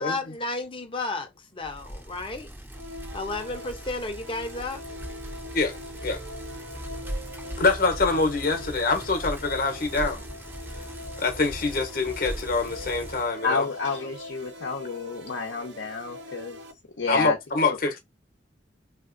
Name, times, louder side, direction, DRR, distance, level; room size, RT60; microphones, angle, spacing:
voice 1, 0.0-2.5 3.1-4.8, left 3 dB, 30° left, 0.7 m, -32 dB
Bicycle, 1.6-13.3, equal, 10° right, 0.6 m, -39 dB
sound 1, 2.7-16.7, left 1 dB, 70° right, 0.7 m, -43 dB
voice 2, 5.5-6.2 7.6-10.2 11.2-13.7 17.1-18.0, left 3 dB, 50° left, 1.0 m, -25 dB
voice 3, 13.4-16.6 17.0-17.4, left 4 dB, 80° left, 0.8 m, -30 dB
3.5 x 2.5 x 2.5 m
head